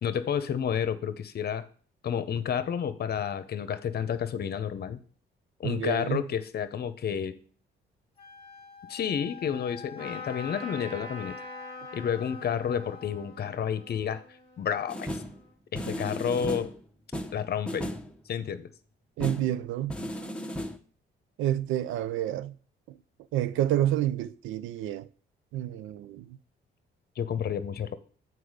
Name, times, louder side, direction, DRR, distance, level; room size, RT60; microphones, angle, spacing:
voice 1, 0.0-1.6 2.0-5.0 5.6-7.4 8.9-11.5 11.9-14.2 14.6-15.2 15.7-16.7 17.3-17.9 18.3-18.7 27.2-27.9, left 8 dB, 55° left, 0.8 m, -30 dB
voice 2, 5.6-6.2 19.2-20.1 21.4-22.5 23.3-25.1 25.5-26.4, right 12 dB, 85° right, 0.5 m, -29 dB
Wind instrument woodwind instrument, 8.2-13.1, left 8 dB, 30° left, 1.5 m, -48 dB
Trumpet, 10.0-15.5, left 2 dB, 70° right, 3.2 m, -44 dB
sound 1, 14.9-15.4 15.7-16.8 17.1-18.1 19.2-19.5 19.9-20.8, equal, 5° left, 1.0 m, -35 dB
7.9 x 4.7 x 5.0 m
cardioid pair, 90°, 20 cm